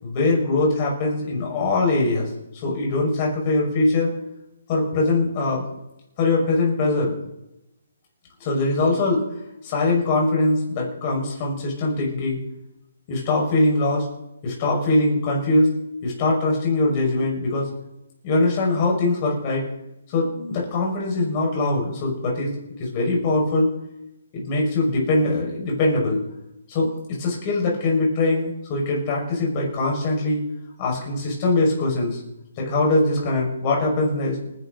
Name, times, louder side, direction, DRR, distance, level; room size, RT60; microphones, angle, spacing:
voice 1, 0.0-2.3 2.6-4.1 4.7-5.6 6.2-7.1 8.4-9.3 9.6-12.4 13.1-14.1 14.4-15.7 16.0-17.7 18.2-19.6 20.1-23.7 24.3-26.2 26.7-30.4 30.8-32.2 32.6-34.4, left 2 dB, 25° left, -2 dB, 5.9 m, -22 dB
28.5 x 11.0 x 4.1 m, 0.89 s
hypercardioid pair, 175°, 0 cm